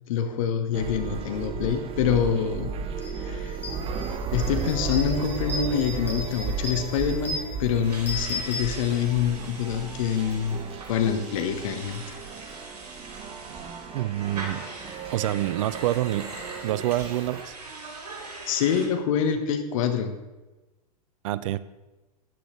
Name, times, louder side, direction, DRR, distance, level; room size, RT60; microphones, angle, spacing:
voice 1, 0.1-2.7 3.2-3.6 4.3-10.6 10.9-12.0 18.5-20.1, left 8 dB, 55° left, 7 dB, 1.5 m, -26 dB
sound 1, 0.7-17.4, right 5 dB, 30° right, 1.1 m, -35 dB
sound 2, 3.0-3.1 3.5-9.3, left 1 dB, 10° left, 4.0 m, -36 dB
sound 3, 7.8-18.9, right 2 dB, 80° right, 3.4 m, -41 dB
voice 2, 13.9-14.7 15.1-16.3 16.6-17.6 21.2-21.6, right 14 dB, 55° right, 17 dB, 0.5 m, -27 dB
13.5 x 10.0 x 3.3 m, 1.1 s
figure-of-eight pair, 95°, 20 cm